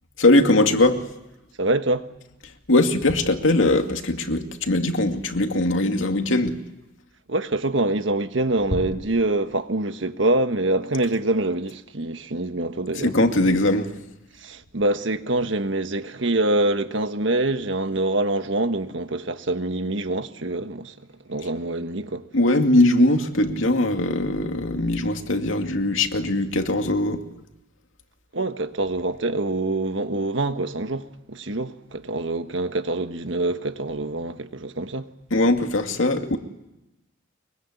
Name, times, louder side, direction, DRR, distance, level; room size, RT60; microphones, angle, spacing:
voice 1, 0.2-1.0 2.7-6.6 13.0-13.9 22.3-27.2 35.3-36.4, left 2 dB, 90° left, 2.3 m, -20 dB
voice 2, 1.6-2.1 7.3-13.1 14.3-22.3 28.3-35.1, right 2 dB, 70° right, 1.5 m, -25 dB
24.0 x 23.0 x 9.6 m
head